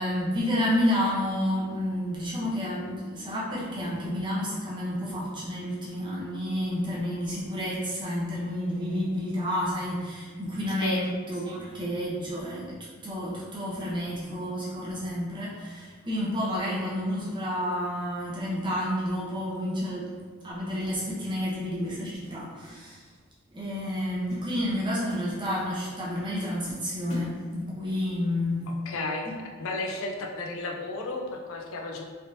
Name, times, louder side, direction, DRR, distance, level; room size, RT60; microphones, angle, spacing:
voice 1, 0.0-12.8 13.0-20.1 20.4-23.0 23.5-28.7, equal, 20° right, -6 dB, 0.8 m, -30 dB
sound 1, 21.8-22.8 23.1-23.4 23.8-24.0 24.3-25.8 26.2-26.3 26.7-28.0, right 1 dB, 85° left, 1.3 m, -44 dB
voice 2, 28.9-29.3 29.6-32.0, left 2 dB, 65° left, 0 dB, 0.5 m, -33 dB
3.4 x 2.7 x 2.7 m, 1.5 s
head